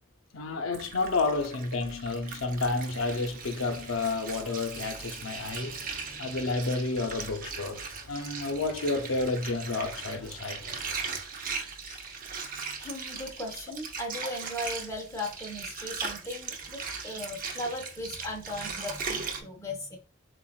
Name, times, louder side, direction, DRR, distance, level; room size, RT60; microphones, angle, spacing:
voice 1, 0.3-5.8 6.2-10.8, left 3 dB, 85° left, 0.7 m, -30 dB
Water, 0.7-19.4, right 5 dB, 45° right, 0.7 m, -39 dB
sound 1, 2.6-11.2, left 1 dB, ahead, 2.2 m, -53 dB
voice 2, 12.8-20.0, left 1 dB, 15° left, 1.0 m, -37 dB
7.2 x 2.4 x 2.4 m
head